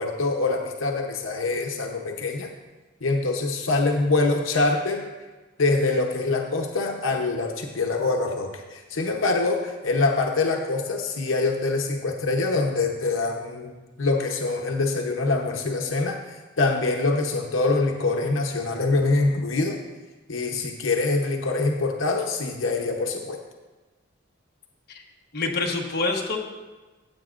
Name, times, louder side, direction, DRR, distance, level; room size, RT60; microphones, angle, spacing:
voice 1, 0.0-2.5 3.0-5.0 5.6-13.7 14.0-19.8 20.3-23.4, left 3 dB, 85° left, 2 dB, 0.9 m, -24 dB
voice 2, 25.3-26.4, left 3 dB, 50° left, 0 dB, 1.1 m, -26 dB
15.5 x 8.1 x 2.5 m, 1.2 s
head